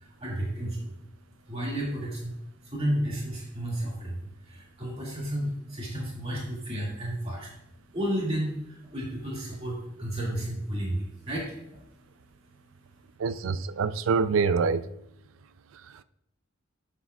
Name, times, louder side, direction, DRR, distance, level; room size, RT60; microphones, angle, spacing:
voice 1, 0.2-0.9 1.5-2.3 2.6-7.5 7.9-11.5, right 1 dB, 30° right, 2.1 m, -32 dB
voice 2, 13.2-14.8, right 5 dB, 80° right, 0.4 m, -25 dB
11.0 x 6.7 x 2.3 m
head